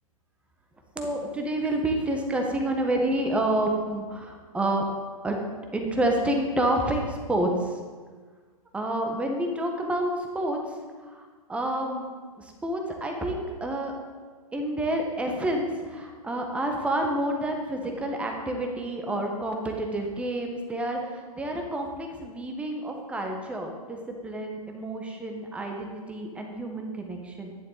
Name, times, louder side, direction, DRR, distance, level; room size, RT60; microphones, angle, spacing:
voice 1, 0.9-4.8 5.2-5.4 5.7-7.7 8.7-10.6 11.1-11.2 11.5-12.0 12.6-13.9 14.5-24.0 24.2-27.5, right 1 dB, 5° right, 2 dB, 1.4 m, -28 dB
12.5 x 10.5 x 4.1 m, 1.5 s
figure-of-eight pair, 115°, 19 cm